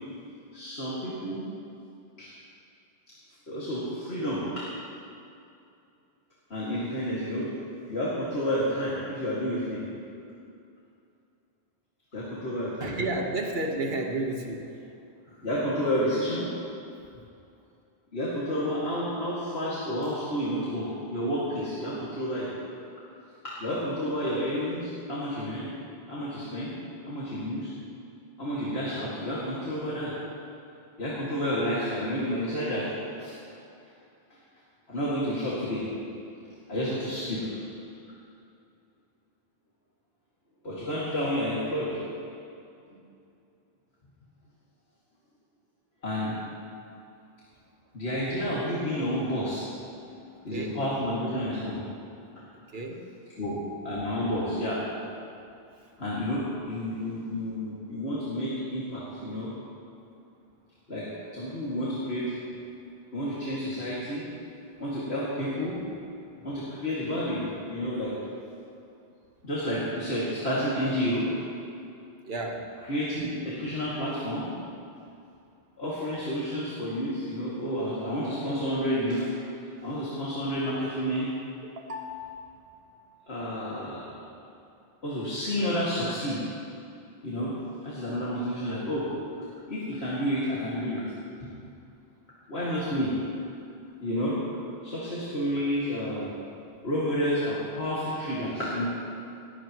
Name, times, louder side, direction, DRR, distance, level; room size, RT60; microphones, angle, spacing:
voice 1, 0.5-1.4 2.2-2.3 3.5-4.4 6.5-7.5 7.9-9.8 12.1-13.0 15.3-16.5 18.1-22.5 23.6-25.7 26.1-26.7 27.0-27.7 28.4-30.1 31.0-32.9 33.2-33.3 34.9-35.8 36.7-37.6 40.6-41.9 42.9-43.0 46.0-46.4 47.9-49.8 50.4-51.8 53.4-53.6 53.8-54.8 56.0-59.5 60.9-61.1 61.3-62.3 63.1-64.3 64.8-65.8 66.4-68.1 69.4-71.2 72.9-74.5 75.8-79.3 79.8-81.3 83.3-84.1 85.0-86.4 87.2-87.5 87.8-89.1 89.7-91.0 92.5-93.1 94.0-94.4 94.8-96.3 96.8-98.8, equal, 85° left, -8 dB, 2.6 m, -30 dB
voice 2, 12.8-14.9 17.1-17.2 50.4-50.8 52.5-53.1 55.7-55.9 66.4-66.5 72.2-72.8 81.7-82.5, right 2 dB, 70° right, 2 dB, 1.6 m, -33 dB
18.5 x 16.0 x 3.1 m, 2.6 s
omnidirectional pair, 1.0 m